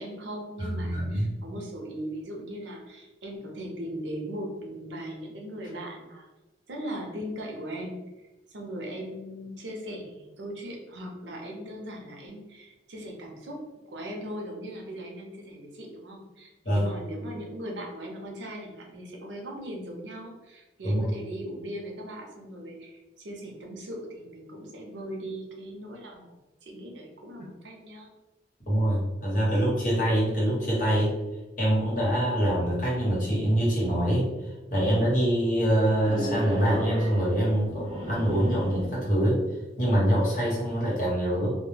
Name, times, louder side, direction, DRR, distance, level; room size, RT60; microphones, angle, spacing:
voice 1, 0.0-6.3 6.7-8.1 8.5-26.4 26.6-28.1, equal, 85° right, 0 dB, 0.6 m, -39 dB
voice 2, 0.6-1.3 16.6-16.9 20.8-21.1 28.7-31.1 31.6-39.4 39.8-41.6, right 1 dB, 45° left, -6 dB, 1.0 m, -25 dB
sound 1, 36.0-39.3, equal, 35° right, 0.5 m, -34 dB
2.1 x 2.1 x 3.1 m, 1.1 s
head